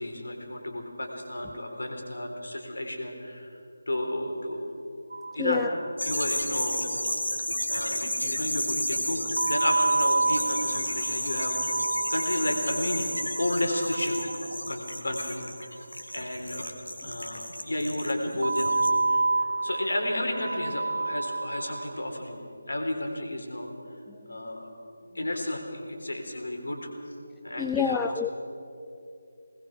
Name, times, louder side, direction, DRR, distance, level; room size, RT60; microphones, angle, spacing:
voice 1, 0.0-3.5 3.9-4.6 5.3-5.7 6.0-11.8 12.1-14.3 14.7-15.7 16.1-16.7 17.0-22.4 22.7-23.7 24.3-24.7 25.1-26.9 27.4-28.0, left 1 dB, 65° left, 3 dB, 3.9 m, -32 dB
sound 1, 5.1-6.1 6.4-6.5 6.7-6.8 9.4-15.5 18.4-22.0, right 3 dB, 60° right, 0.5 m, -29 dB
sound 2, 6.0-18.9, left 1 dB, 80° left, 2.5 m, -32 dB
voice 2, 27.6-28.3, left 7 dB, 5° left, 6 dB, 0.4 m, -27 dB
22.5 x 20.0 x 6.2 m, 2.7 s
figure-of-eight pair, 155°, 0 cm